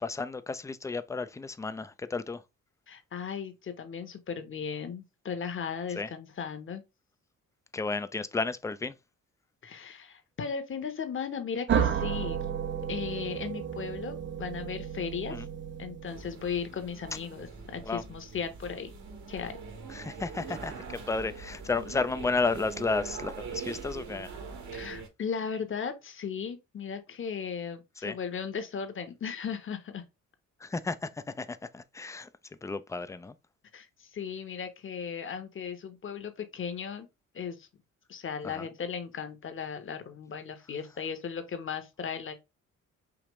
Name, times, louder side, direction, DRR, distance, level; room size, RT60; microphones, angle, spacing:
voice 1, 0.0-2.4 6.0-6.1 7.7-8.9 15.3-15.5 17.9-18.0 19.9-24.3 28.0-28.2 30.6-32.3 32.6-33.3 38.4-38.7, left 3 dB, 10° left, 0.4 m, -32 dB
voice 2, 2.9-6.8 9.6-12.4 12.9-15.3 15.8-18.9 19.3-19.5 24.7-30.0 33.7-37.1 37.3-37.7 38.1-42.3, left 6 dB, 40° left, 1.1 m, -36 dB
sound 1, 11.7-16.4, right 8 dB, 40° right, 0.6 m, -32 dB
sound 2, 16.1-25.1, right 5 dB, 70° right, 1.5 m, -42 dB
5.0 x 2.9 x 3.0 m
cardioid pair, 90°, 30 cm